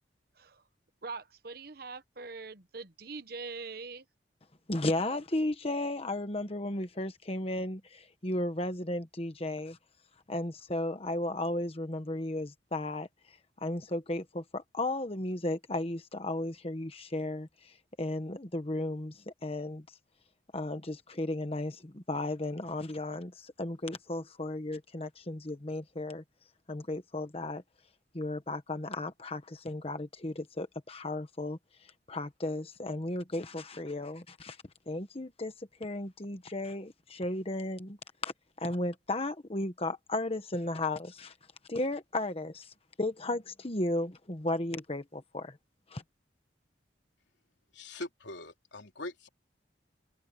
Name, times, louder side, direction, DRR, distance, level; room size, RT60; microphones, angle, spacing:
voice 1, 1.0-4.0, right 4 dB, 55° right, 1.1 m, -43 dB
voice 2, 4.7-9.8 10.3-19.8 20.5-26.2 26.7-27.6 28.1-34.6 34.9-38.0 38.2-38.3 38.6-41.4 41.7-45.6 45.9-46.0, left 1 dB, 30° left, 1.2 m, -35 dB
voice 3, 47.7-49.3, left 2 dB, 75° left, 3.3 m, -42 dB
head